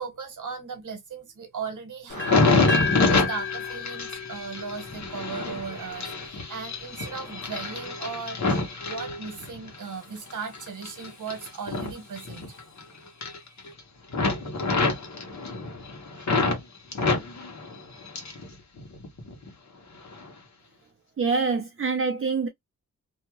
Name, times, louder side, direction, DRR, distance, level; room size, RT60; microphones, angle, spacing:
voice 1, 0.0-2.4 2.9-12.6, right 5 dB, 65° right, 1.2 m, -37 dB
sound 1, 2.1-9.8 10.2-12.8 13.1-13.8 14.1-16.6 16.9-18.5 18.8-19.5 20.0-20.3, left 3 dB, 60° left, 1.2 m, -27 dB
sound 2, 2.2-6.1, left 5 dB, 35° left, 0.9 m, -32 dB
voice 2, 21.2-22.5, right 4 dB, 40° right, 0.6 m, -25 dB
2.7 x 2.4 x 3.0 m
wide cardioid pair, 95°, 32 cm